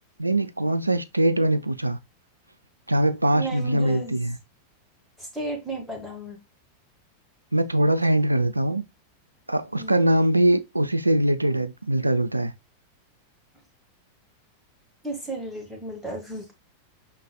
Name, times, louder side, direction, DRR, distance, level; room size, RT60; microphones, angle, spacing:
voice 1, 0.2-2.0 2.9-4.4 7.5-8.8 9.5-12.5, right 1 dB, 85° right, 0.3 m, -22 dB
voice 2, 3.3-4.2 5.2-6.4 9.8-9.9 15.0-16.5, right 2 dB, 5° left, 1.8 m, -33 dB
5.7 x 3.9 x 2.2 m
figure-of-eight pair, 90°, 0 cm